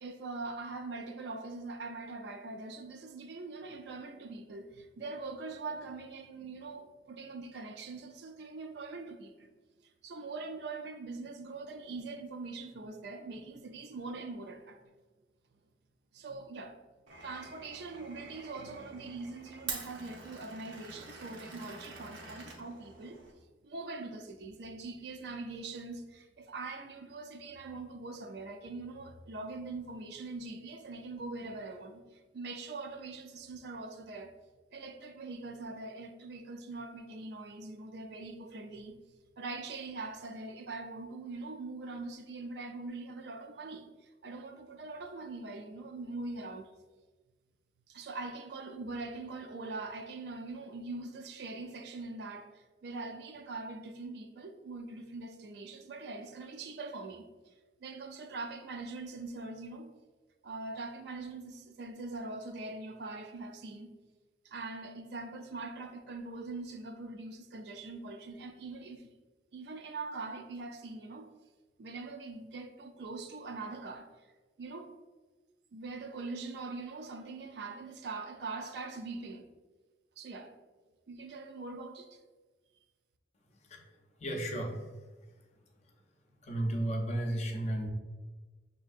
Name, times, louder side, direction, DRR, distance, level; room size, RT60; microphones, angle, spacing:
voice 1, 0.0-9.5 10.0-14.8 16.1-16.8 17.2-23.2 23.6-34.3 34.7-38.9 39.4-46.7 47.9-57.5 57.8-59.9 60.4-63.9 64.4-69.1 69.5-71.3 71.8-74.1 74.6-74.9 75.7-79.5 80.2-80.5 81.1-82.2, right 3 dB, 60° right, 0.4 m, -42 dB
Glass, 17.1-23.3, right 4 dB, 85° right, 0.7 m, -46 dB
voice 2, 84.2-84.8 86.4-87.9, right 1 dB, 35° left, 0.5 m, -33 dB
6.1 x 2.7 x 2.4 m
head